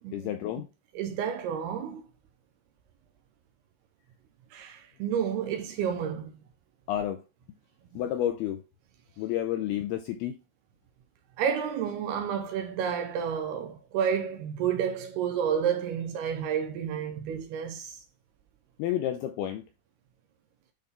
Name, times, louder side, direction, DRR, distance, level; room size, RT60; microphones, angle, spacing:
voice 1, 0.1-0.7 6.9-7.2 8.0-8.6 9.2-10.4 18.8-19.7, left 11 dB, 85° left, 2.2 m, -30 dB
voice 2, 0.9-2.0 4.5-6.3 11.4-18.0, right 8 dB, 80° right, 2.5 m, -30 dB
10.5 x 3.9 x 3.3 m
omnidirectional pair, 5.1 m